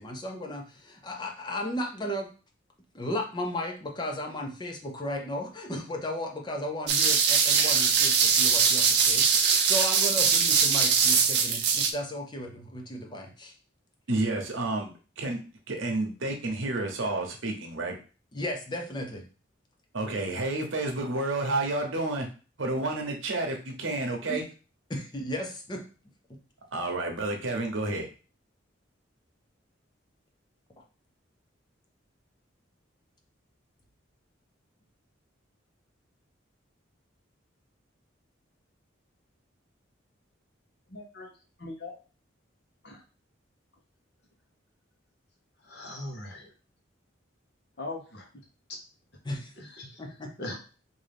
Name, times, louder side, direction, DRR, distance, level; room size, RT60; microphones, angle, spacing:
voice 1, 0.0-2.3 2.9-13.5 18.3-19.3 24.3-24.4 24.9-25.8 49.2-49.5 50.0-50.3, left 1 dB, 20° left, 3 dB, 0.5 m, -35 dB
sound 1, 6.9-11.9, right 6 dB, 55° right, 0.5 m, -22 dB
voice 2, 14.1-15.4 15.7-17.9 19.9-22.3 22.6-24.4 26.7-28.1, right 2 dB, 75° right, 3 dB, 0.9 m, -30 dB
voice 3, 40.9-41.3 41.6-41.9 42.8-43.0 45.6-46.5 47.8-48.3 48.7-48.8 49.6-50.0 50.4-50.6, left 2 dB, 55° left, 1 dB, 0.9 m, -40 dB
3.6 x 2.6 x 3.4 m, 0.36 s
head